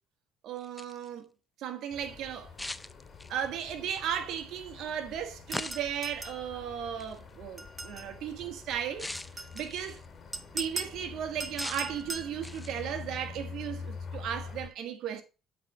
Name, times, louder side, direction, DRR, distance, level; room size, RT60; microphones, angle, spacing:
voice 1, 0.4-1.3 1.6-2.5 3.3-9.1 9.5-10.0 10.5-15.2, right 9 dB, 70° right, 1.5 m, -35 dB
sound 1, 0.6-1.1 2.6-3.5 5.5-6.0 7.0-7.2 9.0-10.1 11.6-12.0 12.4-12.9, left 2 dB, 10° left, 0.5 m, -40 dB
sound 2, 1.9-14.7, left 5 dB, 45° left, 2.2 m, -46 dB
sound 3, 5.5-6.4 7.6-8.1 9.1-9.7 10.3-11.0 11.4-12.3, right 2 dB, 20° right, 1.0 m, -39 dB
8.2 x 4.2 x 5.0 m
supercardioid pair, 80°, 0 cm